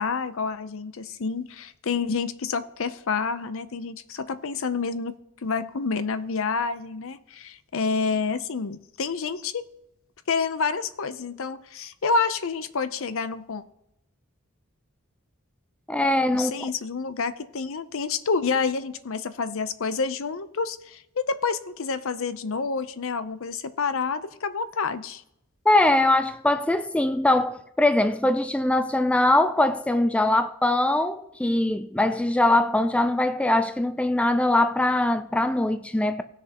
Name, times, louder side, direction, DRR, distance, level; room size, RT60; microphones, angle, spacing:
voice 1, 0.0-5.1 5.4-9.6 10.3-13.6 16.3-25.2, left 5 dB, 65° left, 0.6 m, -28 dB
voice 2, 15.9-16.7 25.7-36.2, left 1 dB, 5° left, 0.3 m, -22 dB
18.0 x 6.6 x 2.9 m
head